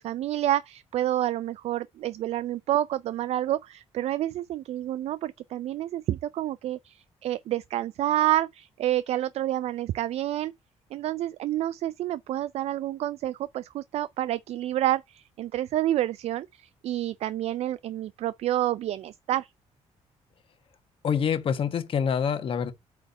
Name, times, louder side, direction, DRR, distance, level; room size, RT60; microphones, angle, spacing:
voice 1, 0.0-10.5 10.9-19.5, right 13 dB, 65° right, 0.4 m, -29 dB
voice 2, 21.0-22.7, left 7 dB, 50° left, 1.3 m, -26 dB
8.3 x 3.5 x 5.3 m
cardioid pair, 130°, 12 cm